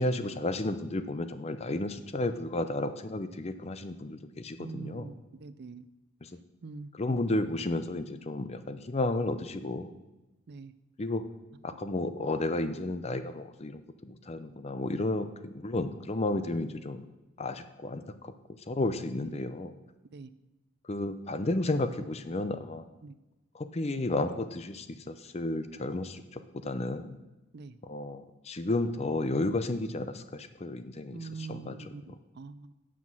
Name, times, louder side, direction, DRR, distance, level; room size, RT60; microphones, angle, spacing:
voice 1, 0.0-5.1 6.2-6.3 6.9-9.9 11.0-11.2 11.6-17.0 17.4-19.7 20.8-22.8 23.5-27.2 27.8-31.9, left 2 dB, 30° left, 10 dB, 0.5 m, -32 dB
voice 2, 4.6-5.9 6.6-6.9 10.5-10.7 19.2-19.4 20.1-20.3 23.0-23.2 27.5-27.8 31.1-32.7, right 4 dB, 50° right, 14 dB, 0.5 m, -44 dB
9.6 x 6.0 x 6.0 m, 1.1 s
head